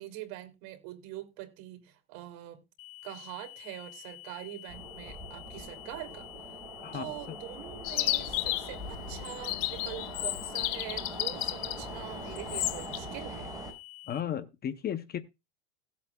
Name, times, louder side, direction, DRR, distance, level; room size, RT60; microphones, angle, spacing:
voice 1, 0.0-2.6 3.0-6.3 6.9-13.5, right 14 dB, 60° right, 2.9 m, -44 dB
sound 1, 2.8-14.2, left 19 dB, 75° left, 1.4 m, -49 dB
sound 2, 4.7-13.7, right 1 dB, 10° right, 4.9 m, -43 dB
voice 2, 6.8-7.4 14.1-15.2, left 9 dB, 25° left, 0.7 m, -35 dB
Chirp tweet, 7.8-13.0, left 17 dB, 55° left, 0.8 m, -33 dB
17.0 x 8.3 x 2.3 m
supercardioid pair, 125°, 39 cm